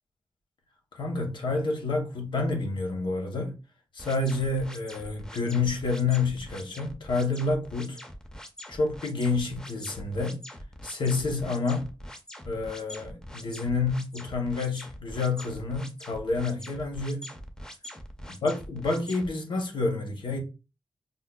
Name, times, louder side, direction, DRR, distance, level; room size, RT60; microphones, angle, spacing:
voice 1, 0.9-3.6 3.9-8.0 8.7-10.4 10.8-11.8 12.4-17.3 18.4-20.4, left 3 dB, 60° left, 0.8 m, -29 dB
sound 1, 4.0-19.3, equal, 10° left, 0.4 m, -44 dB
5.2 x 2.0 x 2.2 m
wide cardioid pair, 125°, 9 cm